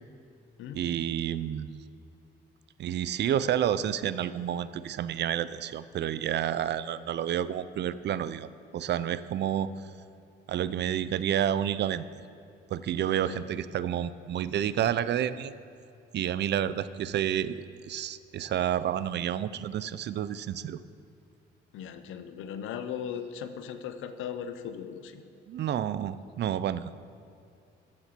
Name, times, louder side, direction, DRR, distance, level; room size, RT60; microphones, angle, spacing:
voice 1, 0.7-1.8 2.8-9.7 10.5-12.0 12.7-15.5 16.1-17.6 17.9-20.8 25.5-26.9, right 10 dB, 60° right, 15 dB, 0.5 m, -30 dB
voice 2, 13.0-13.5 21.7-25.2, left 8 dB, 85° left, 9 dB, 0.8 m, -38 dB
13.5 x 7.4 x 5.9 m, 2.5 s
cardioid pair, 90°, 20 cm